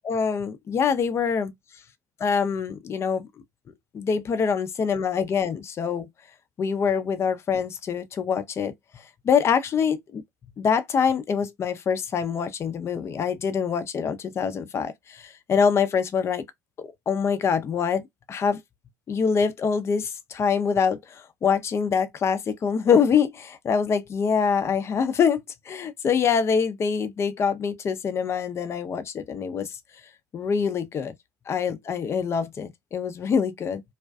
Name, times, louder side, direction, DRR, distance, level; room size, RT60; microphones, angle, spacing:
voice 1, 0.1-1.5 2.2-3.3 3.9-6.1 6.6-8.7 9.2-10.2 10.6-16.4 16.8-18.0 18.3-18.6 19.1-25.4 25.7-29.7 30.3-31.1 31.5-33.8, left 6 dB, 35° left, 0.5 m, -25 dB
2.4 x 2.3 x 2.3 m
hypercardioid pair, 70°, 8 cm